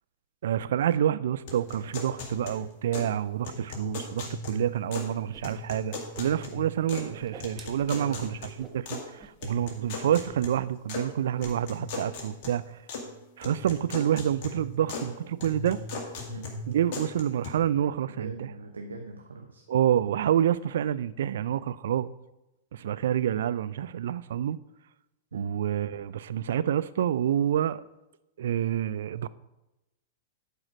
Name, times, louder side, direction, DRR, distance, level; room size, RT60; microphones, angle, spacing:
voice 1, 0.4-12.8 13.4-15.8 16.7-18.5 19.7-22.1 22.7-24.6 25.3-27.8 28.4-29.3, right 10 dB, 65° right, 0.4 m, -28 dB
sound 1, 1.5-3.2 3.4-5.2 5.4-7.1 7.4-9.0 9.4-11.1 11.4-13.1 13.4-15.1 15.4-17.5, left 3 dB, 45° left, 1.9 m, -39 dB
Whoosh swoosh swish, 5.3-5.4 5.7-6.6 6.9-8.8 9.2-9.5 9.7-9.9 10.3-10.8 11.0-11.6, right 5 dB, 20° right, 1.1 m, -48 dB
voice 2, 7.9-8.4 16.3-16.5 18.2-19.6 25.3-25.5, right 3 dB, 80° right, 0.8 m, -40 dB
11.0 x 4.9 x 5.1 m
figure-of-eight pair, 100°, 0 cm